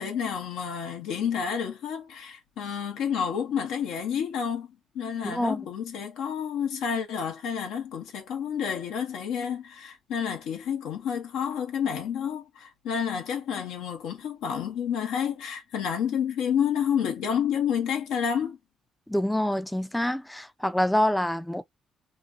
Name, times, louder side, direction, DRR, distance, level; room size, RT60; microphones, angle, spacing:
voice 1, 0.0-18.6, left 8 dB, 85° left, 0.8 m, -29 dB
voice 2, 5.2-5.6 19.1-21.6, left 1 dB, 5° left, 0.4 m, -26 dB
3.0 x 2.2 x 2.5 m
supercardioid pair, 70°, 0 cm